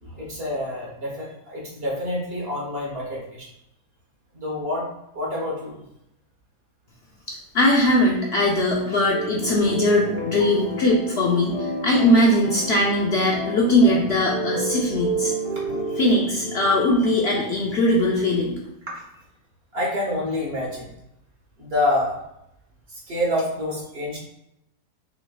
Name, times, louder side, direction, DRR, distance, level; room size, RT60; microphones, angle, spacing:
voice 1, 0.0-3.5 4.3-4.9 5.1-5.8 10.4-10.6 18.9-19.0 19.7-20.9 21.6-22.2 22.9-24.2, left 1 dB, 45° right, -3 dB, 1.2 m, -27 dB
voice 2, 7.3-15.3 15.9-18.6, left 1 dB, 55° left, -3 dB, 0.8 m, -20 dB
sound 1, 9.1-17.8, right 2 dB, 20° left, 1.0 m, -31 dB
5.7 x 3.1 x 2.3 m, 0.82 s
omnidirectional pair, 1.5 m